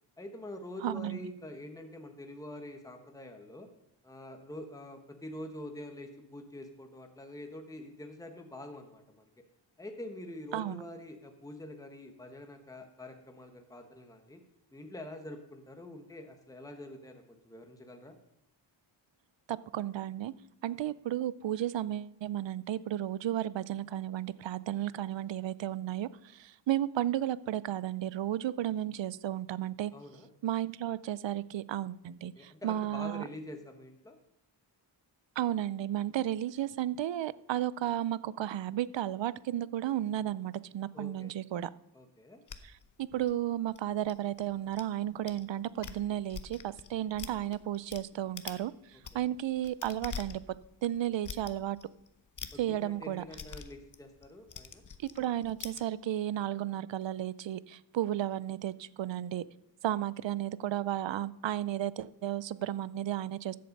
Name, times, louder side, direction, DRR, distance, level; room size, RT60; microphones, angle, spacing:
voice 1, 0.2-3.7 4.0-9.3 9.8-14.4 14.7-18.2 29.9-30.3 32.4-34.2 40.9-41.3 41.9-42.4 49.1-49.3 52.5-54.8, left 1 dB, 5° left, 5 dB, 1.2 m, -46 dB
voice 2, 0.8-1.3 10.5-10.8 19.5-20.3 20.6-29.9 30.4-33.2 35.4-41.7 42.6-42.7 43.0-48.7 49.1-50.4 50.8-51.8 52.6-53.2 55.2-59.4 59.8-63.6, right 12 dB, 70° right, 19 dB, 0.6 m, -33 dB
sound 1, 42.5-44.8 45.3-45.4 45.7-48.0 48.4-48.7 48.9-55.8, left 6 dB, 40° left, 0.9 m, -45 dB
13.5 x 7.7 x 5.3 m, 0.81 s
wide cardioid pair, 115°, 47 cm